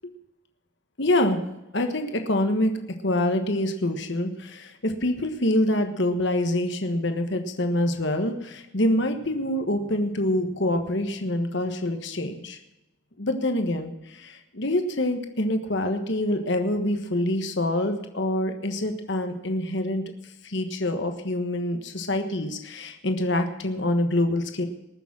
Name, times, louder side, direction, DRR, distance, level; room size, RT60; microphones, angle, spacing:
voice 1, 1.0-1.4 1.7-12.6 13.2-20.0 20.4-24.7, left 1 dB, 55° left, 6 dB, 1.3 m, -26 dB
20.0 x 7.1 x 7.4 m, 0.91 s
head